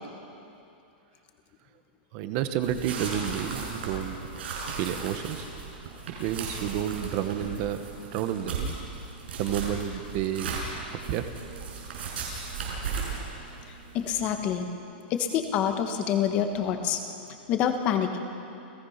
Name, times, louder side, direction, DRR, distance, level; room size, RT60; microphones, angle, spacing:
voice 1, 2.1-4.2 4.8-5.5 6.2-7.8 8.1-8.8 9.4-10.5 11.1-11.3, right 10 dB, 30° right, 9 dB, 1.2 m, -30 dB
sound 1, 2.6-14.4, right 4 dB, 85° right, 6.3 m, -36 dB
voice 2, 13.9-14.7 15.1-17.0 17.5-18.2, left 8 dB, 25° left, 6 dB, 1.3 m, -26 dB
29.0 x 16.5 x 5.8 m, 2.8 s
supercardioid pair, 175°, 6 cm